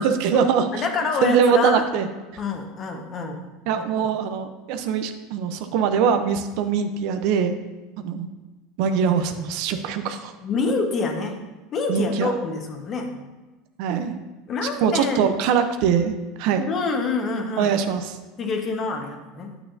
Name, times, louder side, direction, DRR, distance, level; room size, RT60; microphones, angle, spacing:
voice 1, 0.0-0.8 1.2-2.1 3.7-7.5 8.0-8.3 8.8-10.3 11.9-12.3 13.8-14.2 14.8-16.7 17.6-18.1, right 6 dB, 65° right, 8 dB, 0.6 m, -22 dB
voice 2, 0.7-1.9 2.4-3.4 3.7-3.8 10.4-11.4 11.7-13.2 14.5-15.3 16.7-17.7 18.4-19.6, left 4 dB, 40° left, 4 dB, 1.2 m, -26 dB
8.9 x 6.9 x 2.7 m, 1.2 s
supercardioid pair, 105°, 0 cm